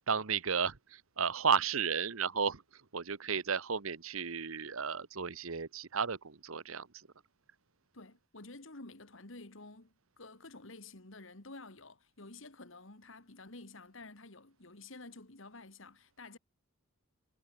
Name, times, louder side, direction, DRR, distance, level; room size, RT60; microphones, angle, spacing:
voice 1, 0.0-7.1, right 6 dB, 75° right, 1.1 m, -33 dB
voice 2, 7.9-16.4, left 2 dB, 65° left, 2.3 m, -51 dB
head